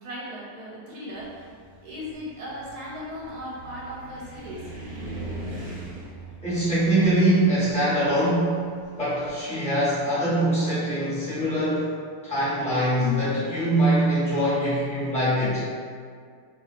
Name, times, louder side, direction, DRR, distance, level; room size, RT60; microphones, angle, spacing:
voice 1, 0.0-1.5 1.8-4.6, equal, 90° right, -5 dB, 1.1 m, -37 dB
Car, 1.2-9.4, right 2 dB, 55° right, 0.8 m, -40 dB
voice 2, 6.4-8.6 9.0-11.9 12.2-15.6, right 1 dB, 5° left, -12 dB, 0.7 m, -23 dB
2.4 x 2.2 x 2.3 m, 2.1 s
omnidirectional pair, 1.6 m